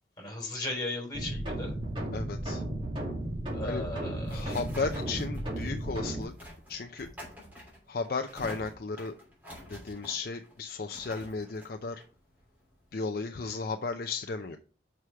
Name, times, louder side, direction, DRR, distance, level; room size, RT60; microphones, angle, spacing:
voice 1, 0.2-1.7 3.5-4.5, left 2 dB, 20° left, -1 dB, 3.3 m, -36 dB
sound 1, 1.1-6.2, right 1 dB, 25° right, 2.3 m, -34 dB
voice 2, 2.1-2.6 3.6-3.8 4.3-7.1 7.9-9.1 9.7-12.0 12.9-14.6, left 4 dB, 50° left, 6 dB, 0.5 m, -35 dB
sound 2, 3.6-12.9, equal, 10° right, 3.0 m, -49 dB
6.2 x 4.9 x 5.6 m, 0.39 s
head